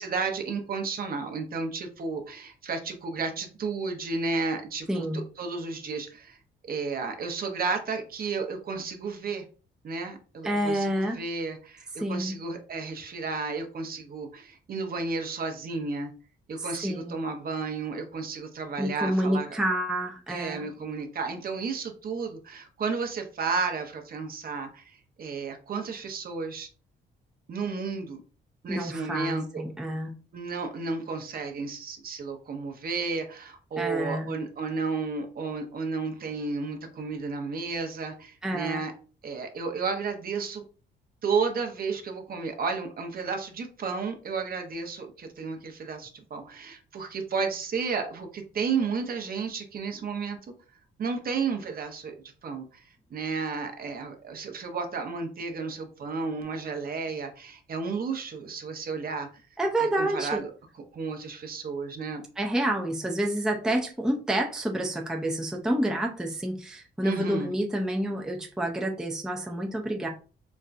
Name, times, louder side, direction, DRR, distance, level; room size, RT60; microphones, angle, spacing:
voice 1, 0.0-6.4 6.6-9.4 9.8-16.1 16.5-19.6 20.3-26.7 27.5-28.2 28.6-29.6 30.3-38.9 39.2-40.6 41.2-50.5 51.0-52.1 52.4-59.4 59.8-60.5 60.7-62.2 67.0-67.5, right 4 dB, 50° right, 4 dB, 0.8 m, -32 dB
voice 2, 4.9-5.2 10.4-11.2 12.0-12.4 16.6-17.2 18.8-20.7 28.7-30.1 33.8-34.3 38.4-38.8 59.6-60.4 62.4-70.1, right 1 dB, 5° right, 1 dB, 0.6 m, -28 dB
4.3 x 2.2 x 2.5 m, 0.37 s
cardioid pair, 90°, 20 cm